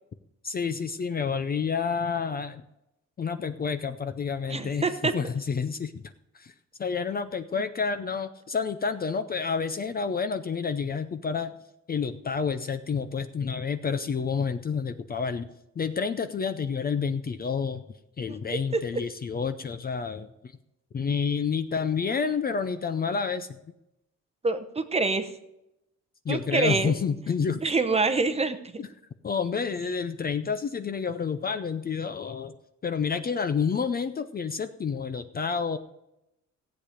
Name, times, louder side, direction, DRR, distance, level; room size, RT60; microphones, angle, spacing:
voice 1, 0.4-2.6 3.2-4.9 5.1-6.5 6.8-11.5 11.9-17.8 18.2-20.5 20.9-23.6 26.2-27.7 28.8-28.9 29.2-32.5 32.8-35.8, left 6 dB, 30° left, 10 dB, 0.5 m, -29 dB
voice 2, 4.5-5.1 18.3-18.4 24.4-25.3 26.3-26.9 27.6-28.8, right 3 dB, 20° right, 9 dB, 0.8 m, -26 dB
15.5 x 8.5 x 5.0 m, 0.87 s
wide cardioid pair, 165°, 29 cm